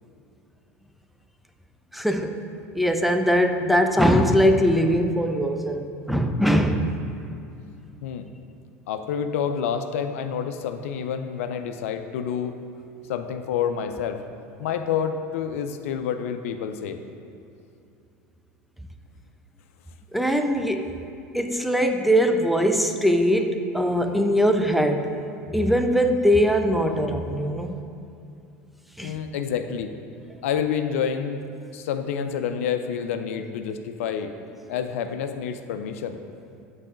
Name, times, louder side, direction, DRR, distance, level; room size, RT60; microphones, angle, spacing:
voice 1, 1.9-2.3 2.7-6.9 20.1-20.9 21.3-25.2 25.5-27.7 29.0-29.2, equal, ahead, 5 dB, 0.5 m, -21 dB
voice 2, 8.9-12.6 13.1-14.2 14.6-17.0 20.8-20.9 29.0-29.9 30.4-31.5 31.7-34.3 34.7-36.2, left 7 dB, 70° left, 8 dB, 0.4 m, -28 dB
7.6 x 4.0 x 5.0 m, 2.6 s
hypercardioid pair, 80°, 8 cm